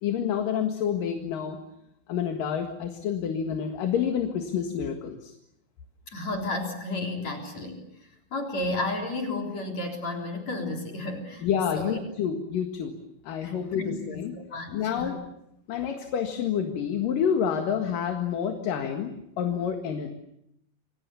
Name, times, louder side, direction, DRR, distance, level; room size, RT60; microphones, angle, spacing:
voice 1, 0.0-1.6 2.1-5.3 11.4-12.9 13.2-14.3 14.7-15.2 15.7-20.1, left 8 dB, 65° left, 4 dB, 3.3 m, -28 dB
voice 2, 6.1-11.4 11.7-12.0 13.4-14.2 14.5-15.1, left 2 dB, 45° left, 1 dB, 4.8 m, -33 dB
29.0 x 24.5 x 7.0 m, 0.80 s
omnidirectional pair, 4.4 m